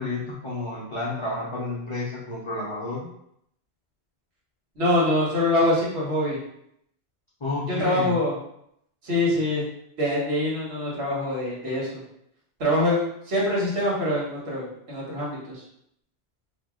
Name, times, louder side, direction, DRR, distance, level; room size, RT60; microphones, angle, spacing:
voice 1, 0.0-3.1 7.4-8.2, left 2 dB, 35° left, -6 dB, 0.5 m, -30 dB
voice 2, 4.8-6.4 7.7-8.4 9.0-9.6 10.0-12.0 12.6-15.6, left 1 dB, 75° right, -5 dB, 1.4 m, -24 dB
2.8 x 2.1 x 3.5 m, 0.74 s
omnidirectional pair, 1.1 m